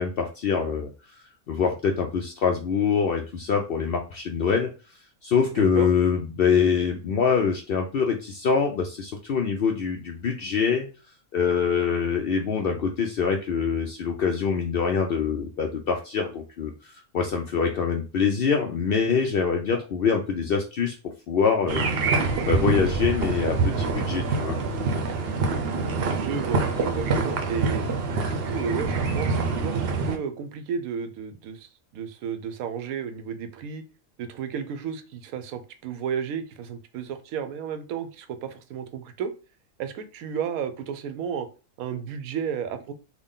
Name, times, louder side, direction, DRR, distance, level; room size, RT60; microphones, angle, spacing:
voice 1, 0.0-4.7 5.2-10.9 11.3-21.0 21.3-21.8 22.5-24.6, left 6 dB, 65° left, 2 dB, 0.5 m, -24 dB
voice 2, 5.6-5.9 26.1-31.6 31.9-33.8 34.2-39.3 39.8-41.5 41.8-42.9, right 7 dB, 90° right, 9 dB, 1.1 m, -33 dB
sound 1, 21.7-30.2, right 4 dB, 55° right, 0.8 m, -25 dB
3.6 x 2.2 x 3.7 m, 0.33 s
omnidirectional pair, 1.4 m